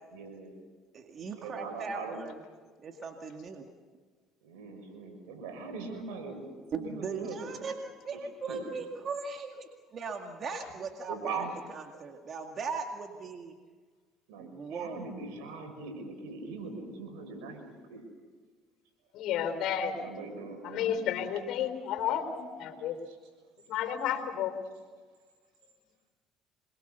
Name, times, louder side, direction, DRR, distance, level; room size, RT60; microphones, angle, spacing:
voice 1, 0.1-0.5 1.4-2.2 4.4-7.6 8.1-8.2 8.5-8.6 11.1-11.6 14.3-18.0 19.9-20.9 23.1-23.2, right 3 dB, 85° right, 4 dB, 6.5 m, -42 dB
voice 2, 0.9-2.4 2.8-3.6 6.7-11.4 11.7-13.5 14.4-15.0, right 5 dB, 45° right, 3 dB, 2.1 m, -38 dB
voice 3, 19.1-20.0 20.6-23.0 23.7-24.5, left 9 dB, 70° left, 8 dB, 3.9 m, -31 dB
26.5 x 22.5 x 6.9 m, 1.5 s
supercardioid pair, 90°, 0 cm